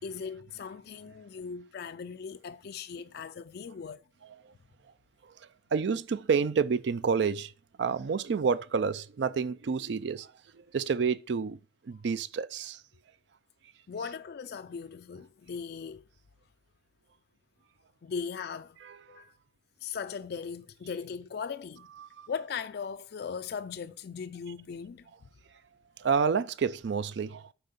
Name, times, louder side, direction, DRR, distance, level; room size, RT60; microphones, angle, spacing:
voice 1, 0.0-4.0 13.9-16.0 18.0-18.8 19.1-19.3 19.8-21.9 22.3-25.1, left 6 dB, 55° left, 0.4 m, -38 dB
voice 2, 5.2-7.5 7.8-11.6 11.8-12.8 18.8-19.2 22.0-22.3 26.0-27.5, right 5 dB, 60° right, 0.4 m, -29 dB
7.6 x 4.6 x 5.2 m
head